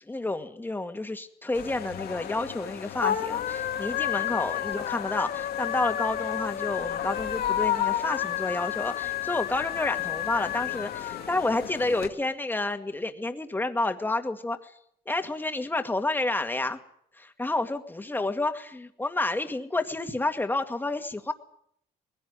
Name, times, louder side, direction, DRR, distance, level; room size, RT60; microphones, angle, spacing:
voice 1, 0.1-14.7 15.1-16.8 17.2-21.3, left 2 dB, 10° left, 7 dB, 2.1 m, -30 dB
sound 1, 1.5-12.1, left 11 dB, 65° left, 2.2 m, -31 dB
20.5 x 16.5 x 9.7 m, 0.69 s
cardioid pair, 110°, 17 cm